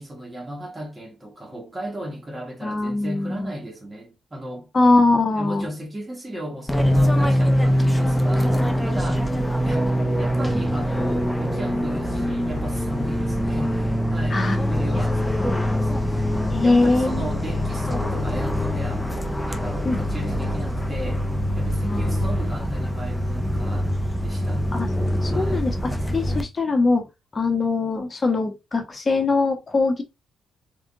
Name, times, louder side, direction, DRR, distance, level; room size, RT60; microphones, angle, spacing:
voice 1, 0.0-4.7 5.3-9.3 9.6-16.3 16.6-21.2 21.6-24.0 24.2-24.7 25.3-25.7, right 1 dB, 20° right, 2.1 m, -35 dB
voice 2, 2.6-3.5 4.7-5.7 14.3-15.0 15.4-15.6 16.5-17.3 19.8-20.0 21.8-22.1 24.7-24.9 25.2-25.7 26.1-27.0 27.3-30.0, left 3 dB, 30° left, 1.2 m, -22 dB
Fixed-wing aircraft airplane, 6.7-26.4, equal, 5° left, 0.9 m, -23 dB
3.8 x 3.4 x 3.7 m
cardioid pair, 90°, 0 cm